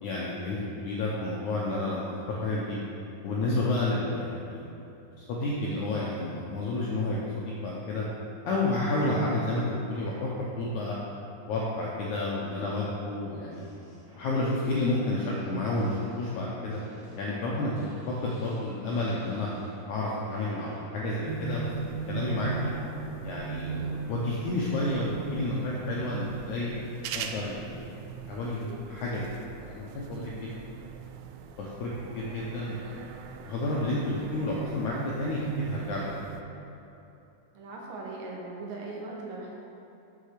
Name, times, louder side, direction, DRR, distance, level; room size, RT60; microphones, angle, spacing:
voice 1, 0.0-2.8 3.2-4.7 5.2-8.0 8.4-10.3 10.5-11.0 11.5-13.6 14.1-16.8 17.2-19.5 19.9-21.7 22.1-22.5 23.2-23.8 24.1-26.7 27.1-27.9 28.3-30.5 31.6-33.1 33.4-36.3, left 2 dB, 85° left, -5 dB, 1.7 m, -30 dB
sound 1, 13.5-20.0 20.3-21.1 21.4-23.0 23.4-24.1 25.2-25.4, left 1 dB, 45° right, 1.2 m, -51 dB
sound 2, 21.3-36.4, right 7 dB, 85° right, 2.1 m, -39 dB
voice 2, 37.5-39.5, right 3 dB, 65° right, -2 dB, 2.6 m, -40 dB
6.6 x 6.5 x 6.6 m, 2.9 s
omnidirectional pair, 4.7 m